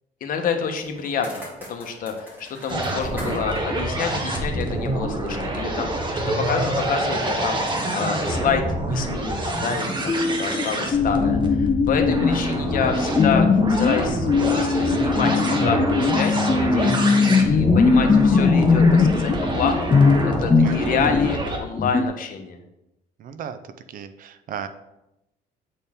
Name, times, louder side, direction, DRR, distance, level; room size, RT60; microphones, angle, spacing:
voice 1, 0.2-1.4 1.7-19.9 20.2-22.6, left 6 dB, 55° left, 4 dB, 1.1 m, -28 dB
sound 1, 0.8-5.0, equal, 10° right, 2.4 m, -42 dB
sound 2, 2.7-21.6, right 1 dB, 30° right, 1.2 m, -26 dB
sound 3, 10.0-10.6 10.9-21.4 21.8-22.1, left 5 dB, 20° left, 0.4 m, -20 dB
voice 2, 23.2-24.7, right 8 dB, 55° right, 11 dB, 0.5 m, -36 dB
8.5 x 4.2 x 3.6 m, 0.89 s
cardioid pair, 110°, 17 cm